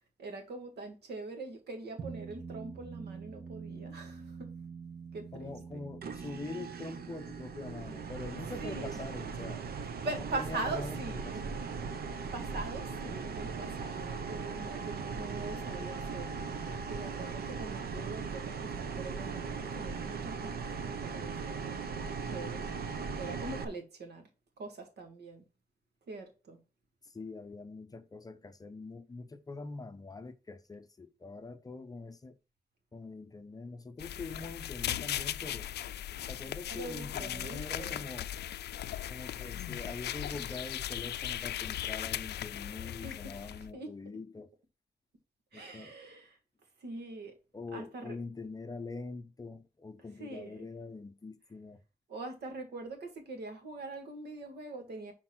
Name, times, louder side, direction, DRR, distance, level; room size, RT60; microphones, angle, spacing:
voice 1, 0.2-4.5 5.1-5.8 8.6-9.0 10.0-11.4 12.3-16.5 16.9-20.7 21.0-21.9 22.2-22.7 23.2-24.2 24.6-25.4 26.1-26.6 36.7-38.0 43.0-43.1 43.7-43.9 45.5-46.4 46.8-47.3 47.7-48.2 50.2-50.7 52.1-55.1, right 3 dB, 85° right, 1.9 m, -42 dB
sound 1, 2.0-12.7, right 5 dB, 35° right, 0.8 m, -48 dB
voice 2, 5.3-9.6 10.3-11.4 12.9-13.3 27.0-32.4 32.9-35.7 36.3-38.3 39.1-44.5 45.5-45.9 47.5-51.8, left 3 dB, 20° left, 0.6 m, -44 dB
sound 2, 6.0-23.6, right 5 dB, 70° right, 0.9 m, -39 dB
sound 3, 34.0-43.7, left 11 dB, 90° left, 0.4 m, -38 dB
6.1 x 4.4 x 6.0 m
wide cardioid pair, 160°, 17 cm